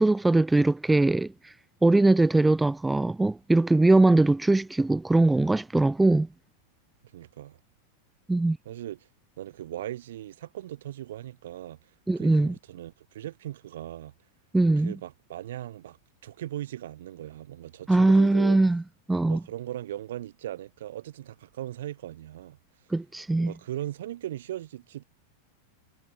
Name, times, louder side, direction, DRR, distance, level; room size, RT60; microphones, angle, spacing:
voice 1, 0.0-1.5 1.8-6.3 8.3-8.6 12.1-12.5 14.5-14.9 17.9-18.8 19.1-19.4 22.9-23.5, right 2 dB, 5° right, 0.3 m, -21 dB
voice 2, 7.0-7.6 8.7-9.0 9.4-11.8 12.2-14.1 14.8-16.0 16.2-18.6 19.2-22.6 23.4-25.0, right 13 dB, 60° right, 1.9 m, -38 dB
figure-of-eight pair, 90°, 0 cm